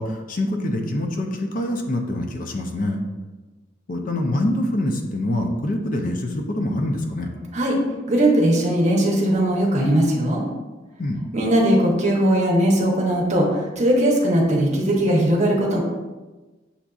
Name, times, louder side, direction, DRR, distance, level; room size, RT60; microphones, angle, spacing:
voice 1, 0.0-3.0 3.9-7.3 11.0-11.2, left 1 dB, 45° left, 3 dB, 0.5 m, -25 dB
voice 2, 8.1-10.4 11.3-15.8, right 1 dB, 35° right, -1 dB, 0.8 m, -19 dB
7.0 x 2.6 x 2.3 m, 1.2 s
head